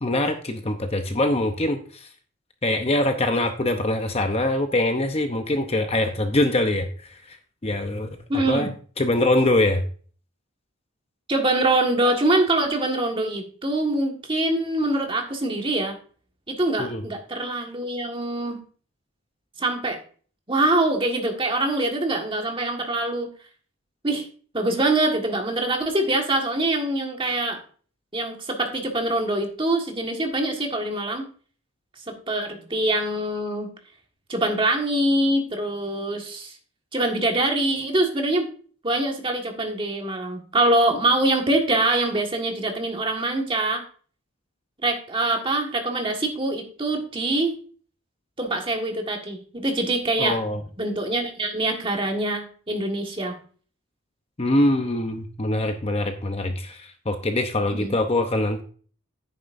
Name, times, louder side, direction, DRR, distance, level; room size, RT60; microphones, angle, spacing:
voice 1, 0.0-2.1 2.6-7.4 7.6-8.2 8.5-9.8 16.8-17.0 50.2-50.6 54.4-58.6, left 1 dB, 25° left, 6 dB, 0.7 m, -23 dB
voice 2, 8.3-8.7 11.3-16.0 16.5-18.6 19.6-20.0 20.5-23.3 24.0-24.2 24.5-27.6 28.1-31.3 32.1-33.7 34.3-36.5 36.9-38.5 38.8-43.8 44.8-47.5 48.4-50.4 50.8-53.3 57.7-57.9, right 2 dB, 25° right, 2 dB, 1.6 m, -24 dB
10.5 x 9.2 x 2.6 m, 0.42 s
head